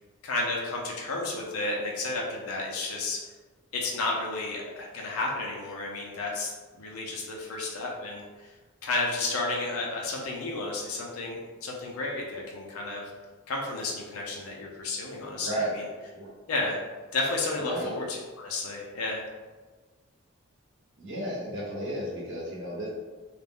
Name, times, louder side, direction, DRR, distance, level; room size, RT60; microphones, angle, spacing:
voice 1, 0.2-3.2 3.7-6.5 6.8-8.5 8.8-13.1 13.5-15.8 16.5-16.8 17.1-19.2, left 2 dB, 85° left, -2 dB, 0.5 m, -32 dB
voice 2, 15.4-15.7 16.1-16.3 17.6-17.9 21.0-22.9, right 1 dB, 60° right, -6 dB, 0.9 m, -33 dB
2.4 x 2.0 x 3.4 m, 1.4 s
head